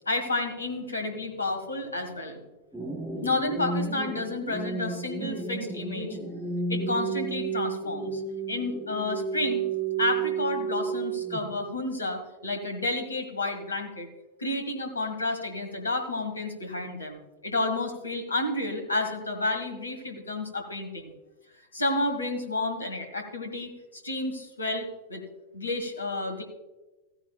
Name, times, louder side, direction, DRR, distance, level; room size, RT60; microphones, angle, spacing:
voice 1, 0.1-2.4 3.2-6.1 6.7-8.2 8.5-9.7 10.0-14.1 14.4-21.1 21.7-25.2 25.5-26.4, left 2 dB, 75° left, 4 dB, 1.6 m, -31 dB
sound 1, 2.7-11.7, right 4 dB, 10° right, 2.4 m, -32 dB
15.0 x 9.8 x 2.3 m, 1.1 s
figure-of-eight pair, 90°, 0 cm